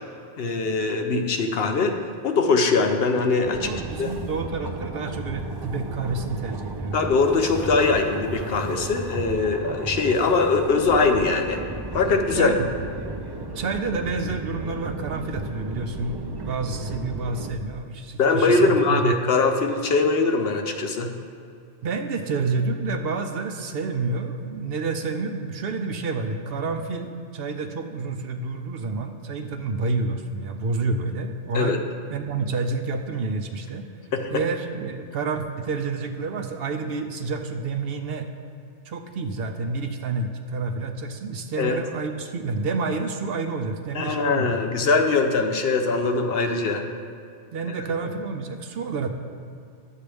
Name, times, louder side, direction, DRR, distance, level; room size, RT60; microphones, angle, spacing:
voice 1, 0.4-2.0 2.2-3.7 4.0-4.1 6.9-11.6 11.9-12.5 18.2-21.1 31.5-31.8 34.1-34.3 41.6-41.8 43.9-46.9, left 4 dB, 65° left, 5 dB, 0.9 m, -22 dB
sound 1, 3.4-17.5, right 2 dB, 40° right, 0.3 m, -34 dB
voice 2, 3.6-7.0 12.3-12.7 13.5-19.1 21.8-31.8 32.1-33.9 34.3-38.3 38.8-44.5 47.5-49.1, right 3 dB, 65° right, 6 dB, 0.8 m, -29 dB
11.0 x 7.4 x 3.4 m, 2.5 s
omnidirectional pair, 1.2 m